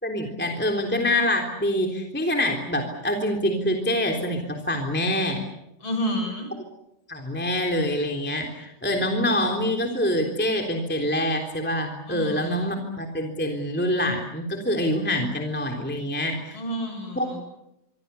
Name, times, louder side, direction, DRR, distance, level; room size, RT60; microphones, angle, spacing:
voice 1, 0.0-5.4 7.1-16.6 17.1-17.4, left 1 dB, 5° left, 2 dB, 3.1 m, -25 dB
voice 2, 5.8-6.5 12.1-12.7 16.5-17.4, equal, 35° left, 5 dB, 8.1 m, -30 dB
27.0 x 24.0 x 7.0 m, 0.85 s
omnidirectional pair, 3.8 m